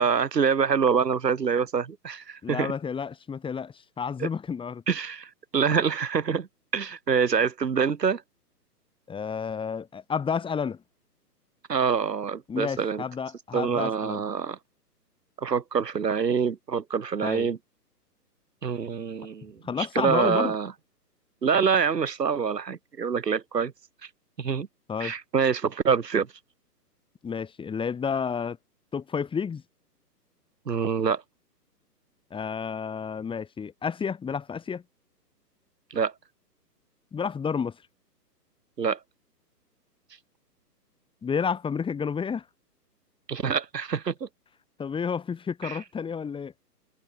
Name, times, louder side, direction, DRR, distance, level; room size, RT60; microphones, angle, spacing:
voice 1, 0.0-2.7 4.2-4.3 4.9-6.5 6.7-8.2 11.7-13.0 13.5-14.6 15.4-17.6 18.6-20.7 21.4-23.7 24.4-24.7 25.0-26.3 30.7-31.2 35.9-36.1 38.8-39.0 43.3-44.3 45.6-45.8, right 6 dB, 75° right, 3.0 m, -26 dB
voice 2, 2.4-4.8 9.1-10.8 12.5-14.2 17.2-17.5 19.6-20.5 24.9-25.1 27.2-28.6 28.9-29.6 32.3-34.8 37.1-37.8 41.2-42.4 44.8-46.5, left 6 dB, 10° left, 6.0 m, -30 dB
figure-of-eight pair, 135°, 49 cm